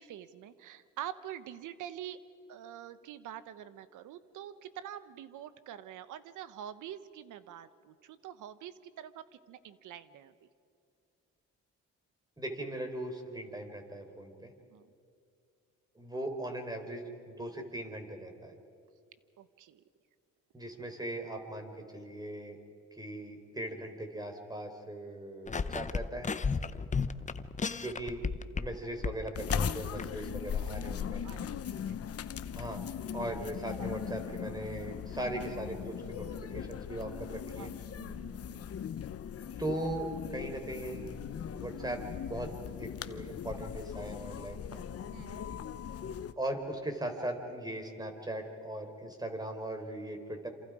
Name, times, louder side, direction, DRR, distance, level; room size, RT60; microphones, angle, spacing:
voice 1, 0.0-2.2 2.5-10.5 14.7-14.9 19.4-19.8 26.6-26.9 30.2-32.2 37.6-37.7 38.0-38.7 45.1-45.8, right 11 dB, 85° right, 13 dB, 1.1 m, -46 dB
voice 2, 12.4-14.5 16.0-18.5 20.5-22.6 22.9-26.3 27.8-28.2 28.5-31.3 32.5-32.9 33.1-36.3 36.5-37.7 39.6-41.2 41.5-42.5 42.8-44.8 46.4-50.5, right 1 dB, 15° right, 4 dB, 4.0 m, -39 dB
sound 1, 25.5-28.7 29.0-30.0, left 5 dB, 25° left, 0.8 m, -33 dB
sound 2, 29.3-46.3, left 8 dB, 50° left, 1.0 m, -39 dB
27.5 x 27.5 x 5.0 m, 2.5 s
cardioid pair, 90°, 30 cm